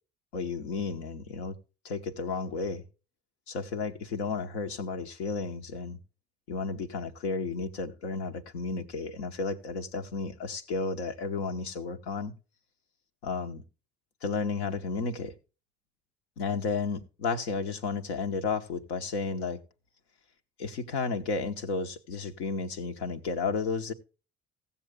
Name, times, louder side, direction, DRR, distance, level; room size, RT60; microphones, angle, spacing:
voice 1, 0.3-1.5 1.8-2.8 3.5-6.0 6.5-12.3 13.2-13.6 14.2-15.3 16.4-19.6 20.6-23.9, left 4 dB, 80° left, 1.0 m, -32 dB
15.5 x 7.0 x 3.6 m
figure-of-eight pair, 50°, 32 cm